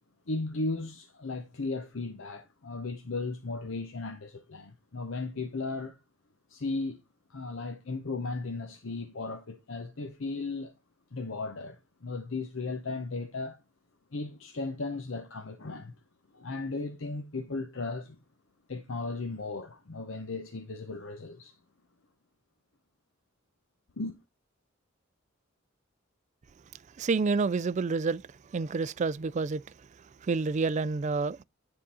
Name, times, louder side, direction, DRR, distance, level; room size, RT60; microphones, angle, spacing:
voice 1, 0.3-6.0 6.5-7.0 7.3-10.7 11.1-13.6 14.1-15.9 16.3-18.2 18.7-21.5 24.0-24.2, left 3 dB, 65° left, 0.8 m, -36 dB
voice 2, 27.0-28.2 28.5-29.6 30.2-31.4, right 4 dB, 35° right, 0.3 m, -28 dB
10.0 x 3.8 x 4.1 m
head